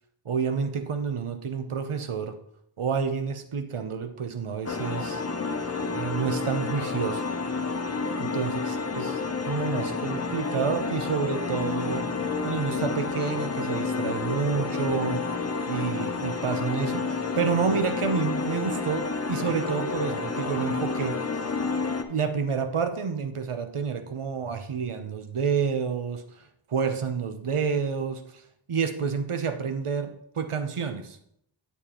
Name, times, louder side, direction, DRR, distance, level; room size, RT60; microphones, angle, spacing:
voice 1, 0.2-2.4 2.8-5.2 5.9-7.2 8.2-12.1 12.4-15.2 15.7-21.2 22.1-28.4 28.7-31.2, right 6 dB, 90° right, 8 dB, 0.8 m, -29 dB
sound 1, 4.7-22.0, left 4 dB, 30° left, 0.6 m, -30 dB
8.6 x 7.2 x 3.0 m, 0.72 s
wide cardioid pair, 45°, 49 cm